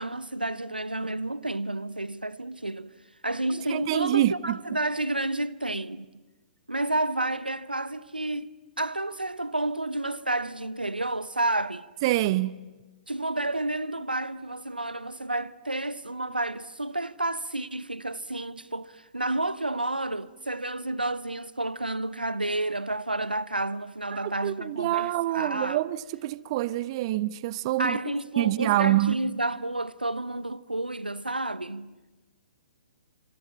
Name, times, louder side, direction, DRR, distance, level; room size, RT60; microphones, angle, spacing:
voice 1, 0.0-2.9 3.2-6.2 6.7-11.9 13.1-25.8 27.8-31.9, right 2 dB, 90° right, 0.9 m, -30 dB
voice 2, 3.7-4.6 12.0-12.6 24.1-28.0 28.4-29.2, right 15 dB, 35° right, 0.8 m, -26 dB
27.5 x 27.0 x 7.3 m
figure-of-eight pair, 120°, 5 cm